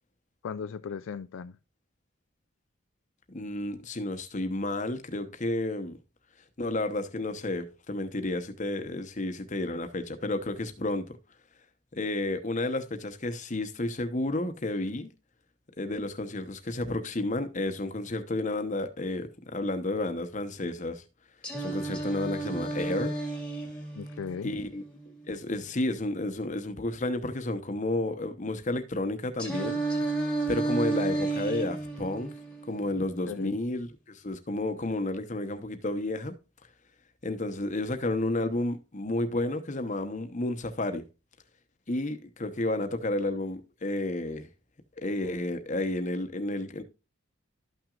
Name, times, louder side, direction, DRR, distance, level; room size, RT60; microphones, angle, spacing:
voice 1, 0.4-1.6 24.0-24.5 33.3-33.6, left 6 dB, 80° left, 0.4 m, -37 dB
voice 2, 3.3-6.0 6.6-11.2 11.9-15.1 15.8-21.0 21.6-23.1 24.4-24.8 25.3-29.8 30.5-32.3 32.7-36.4 37.2-41.0 41.9-44.5 45.0-46.8, left 2 dB, 40° left, 0.9 m, -31 dB
Singing, 21.4-25.4 29.4-33.4, right 3 dB, 5° left, 1.8 m, -32 dB
12.5 x 6.0 x 2.4 m
head